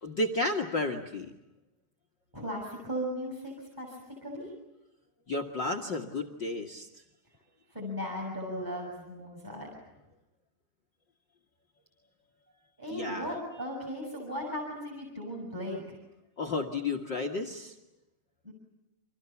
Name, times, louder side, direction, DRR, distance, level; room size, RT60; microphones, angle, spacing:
voice 1, 0.0-1.3 5.3-6.9 12.9-13.3 16.4-17.7, left 2 dB, 70° left, 8 dB, 1.0 m, -32 dB
voice 2, 2.3-4.5 7.7-9.7 12.8-16.0 18.4-18.5, equal, 5° right, 1 dB, 6.2 m, -37 dB
30.0 x 25.5 x 7.2 m, 0.97 s
omnidirectional pair, 4.8 m